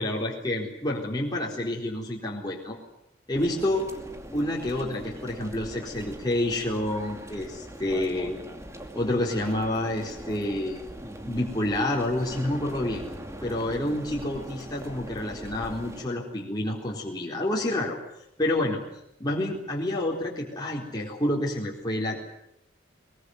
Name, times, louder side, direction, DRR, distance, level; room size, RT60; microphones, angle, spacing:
voice 1, 0.0-2.8 3.3-3.9 4.3-8.4 9.0-10.8 11.2-13.1 13.4-18.0 18.4-18.8 19.2-22.2, left 1 dB, 20° left, -3 dB, 4.2 m, -28 dB
sound 1, 3.3-16.1, equal, 15° right, 2.5 m, -41 dB
22.5 x 22.0 x 9.6 m, 0.79 s
head